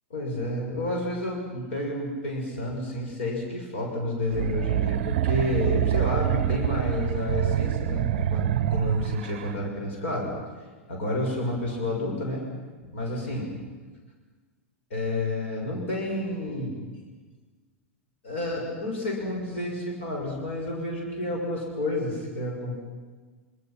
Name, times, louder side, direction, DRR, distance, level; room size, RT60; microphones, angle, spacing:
voice 1, 0.1-10.3 10.9-12.5 12.9-13.5 14.9-16.8 18.2-22.8, left 1 dB, 60° left, 0 dB, 6.6 m, -30 dB
sound 1, 4.3-9.6, right 12 dB, 50° right, 0.6 m, -26 dB
27.0 x 26.0 x 6.0 m, 1.4 s
figure-of-eight pair, 90°, 7 cm